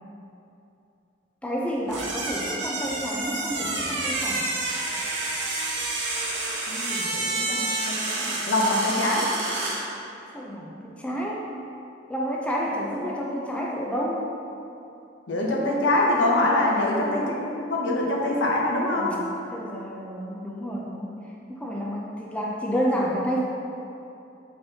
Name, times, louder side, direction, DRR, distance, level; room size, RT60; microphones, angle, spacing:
voice 1, 1.4-4.5 10.3-11.4 12.1-14.2 16.7-17.0 19.0-21.1 21.5-23.4, equal, 5° left, -3 dB, 0.3 m, -30 dB
sound 1, 1.9-9.8, right 2 dB, 70° right, 0.7 m, -29 dB
voice 2, 6.7-9.3 15.3-19.2, left 1 dB, 80° left, -2 dB, 0.7 m, -24 dB
4.1 x 3.8 x 2.7 m, 2.7 s
head